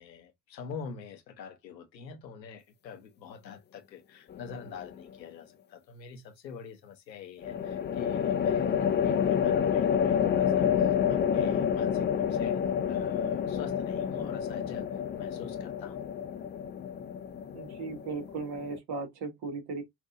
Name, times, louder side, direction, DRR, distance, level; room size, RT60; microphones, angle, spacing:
voice 1, 0.0-12.6 12.9-16.0, left 6 dB, 80° left, 0.8 m, -46 dB
sound 1, 4.3-4.9 7.4-18.8, left 8 dB, 20° left, 0.4 m, -29 dB
voice 2, 17.5-19.8, right 4 dB, 50° right, 1.5 m, -37 dB
5.6 x 2.6 x 2.5 m
figure-of-eight pair, 50°, 50 cm